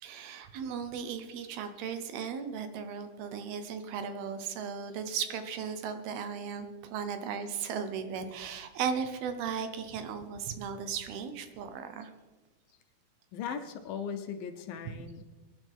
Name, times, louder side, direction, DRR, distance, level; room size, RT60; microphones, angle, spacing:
voice 1, 0.0-12.1, right 7 dB, 80° right, 8 dB, 2.9 m, -36 dB
voice 2, 13.3-15.2, left 7 dB, 75° left, 7 dB, 2.4 m, -38 dB
23.5 x 10.0 x 3.6 m, 1.3 s
omnidirectional pair, 4.5 m